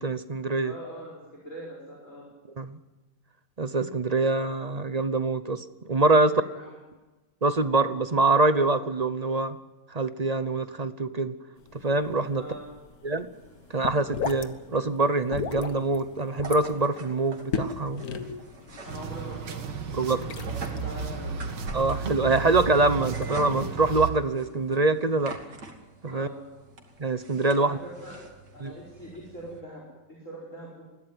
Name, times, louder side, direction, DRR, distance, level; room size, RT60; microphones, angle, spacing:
voice 1, 0.0-0.7 2.6-2.8 3.6-6.3 7.4-9.6 9.9-11.3 11.8-12.4 13.0-13.3 13.7-18.0 19.9-20.3 21.7-25.4 26.0-26.3 27.0-27.8 28.6-28.7, right 3 dB, 30° right, 12 dB, 0.7 m, -24 dB
voice 2, 0.6-2.3 6.3-6.7 12.4-12.7 18.8-19.7 20.3-21.4 26.1-26.4 27.6-28.2 28.5-30.8, right 1 dB, 45° left, -3 dB, 5.3 m, -42 dB
sound 1, 11.6-23.4, left 6 dB, 60° left, 1.7 m, -38 dB
sound 2, 13.3-29.6, right 3 dB, 70° right, 3.1 m, -45 dB
sound 3, 18.9-24.1, right 6 dB, 85° right, 2.2 m, -34 dB
21.5 x 16.5 x 9.3 m, 1.1 s
omnidirectional pair, 1.8 m